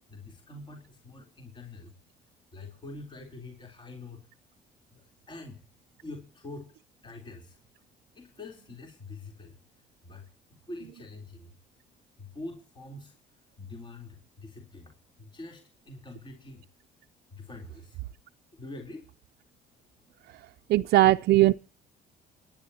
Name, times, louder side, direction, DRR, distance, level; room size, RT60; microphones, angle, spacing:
voice 1, 0.1-1.9 2.5-4.2 4.9-5.6 6.0-6.7 7.0-7.6 8.1-9.6 10.0-11.5 12.2-13.1 13.6-16.6 17.3-18.0 18.5-19.1, left 2 dB, 25° left, 3.8 m, -45 dB
voice 2, 20.7-21.5, right 16 dB, 70° right, 0.6 m, -19 dB
28.5 x 10.5 x 2.9 m
cardioid pair, 110°, 17 cm